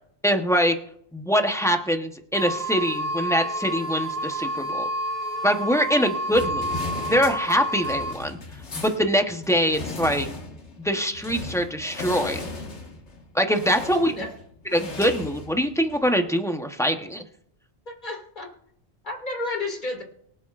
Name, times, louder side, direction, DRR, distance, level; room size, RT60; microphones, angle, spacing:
voice 1, 0.2-0.7 1.1-4.9 5.4-6.8 7.0-8.4 8.8-10.3 10.8-12.5 13.3-14.1 14.7-17.2, equal, 5° left, 5 dB, 0.8 m, -23 dB
sound 1, 2.3-8.1, right 1 dB, 50° right, 3.0 m, -29 dB
sound 2, 6.3-16.1, left 3 dB, 80° left, 1.9 m, -37 dB
voice 2, 13.9-14.3 17.9-18.5 19.0-20.0, left 2 dB, 45° left, 1 dB, 2.4 m, -32 dB
23.5 x 8.1 x 2.5 m, 0.69 s
omnidirectional pair, 1.2 m